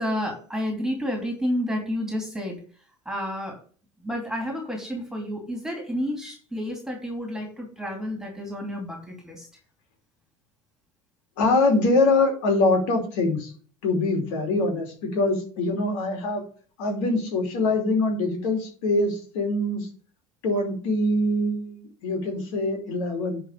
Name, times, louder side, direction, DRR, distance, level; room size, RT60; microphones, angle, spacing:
voice 1, 0.0-2.6 3.0-3.6 4.0-9.5, equal, 5° right, 1 dB, 3.0 m, -30 dB
voice 2, 11.4-13.5 13.8-16.4 16.8-19.9 20.4-23.4, left 2 dB, 60° left, 2 dB, 3.0 m, -24 dB
10.0 x 4.2 x 6.8 m, 0.42 s
figure-of-eight pair, 70°, 18 cm